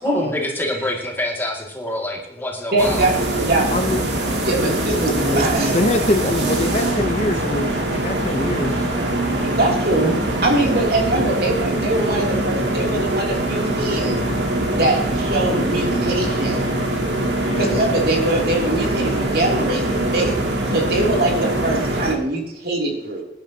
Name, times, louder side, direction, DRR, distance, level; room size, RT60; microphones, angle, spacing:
voice 1, 0.0-3.1, left 1 dB, 10° left, -2 dB, 2.3 m, -26 dB
voice 2, 2.7-3.7 4.4-5.8 9.4-10.2 10.4-14.2 14.8-16.6 17.6-20.4 20.7-23.2, right 2 dB, 60° right, -1 dB, 3.0 m, -22 dB
sound 1, 2.8-22.1, right 1 dB, 90° right, 2.6 m, -23 dB
voice 3, 3.7-4.0 4.4-5.5 5.7-8.9 17.4-17.8, left 1 dB, 40° left, 7 dB, 0.8 m, -24 dB
20.5 x 10.5 x 2.9 m, 0.83 s
head